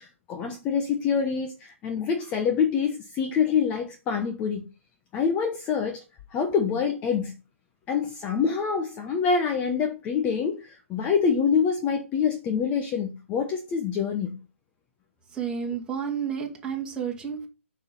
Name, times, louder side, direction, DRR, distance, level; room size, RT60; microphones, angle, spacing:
voice 1, 0.0-4.7 5.1-6.0 6.3-7.3 7.9-14.4, left 6 dB, 20° left, 1.0 m, -26 dB
voice 2, 15.3-17.5, right 7 dB, 10° right, 2.4 m, -31 dB
6.9 x 6.3 x 5.4 m
hypercardioid pair, 150°, 7 cm